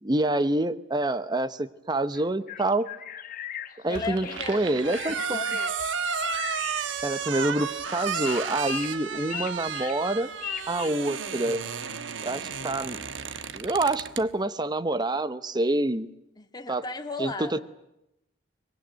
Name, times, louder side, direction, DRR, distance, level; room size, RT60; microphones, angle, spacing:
voice 1, 0.0-2.9 3.8-5.4 7.0-10.3 10.7-11.6 12.2-13.0 13.5-16.1 16.7-16.8 17.2-17.6, right 2 dB, 25° right, 14 dB, 0.9 m, -27 dB
sound 1, 2.1-10.9, left 10 dB, 50° left, 1.1 m, -40 dB
voice 2, 3.9-5.0 5.3-5.7 16.4-17.6, left 3 dB, 20° left, 5 dB, 2.0 m, -36 dB
sound 2, 3.9-14.2, right 6 dB, 85° right, 1.2 m, -33 dB
23.5 x 22.0 x 9.4 m, 0.87 s
head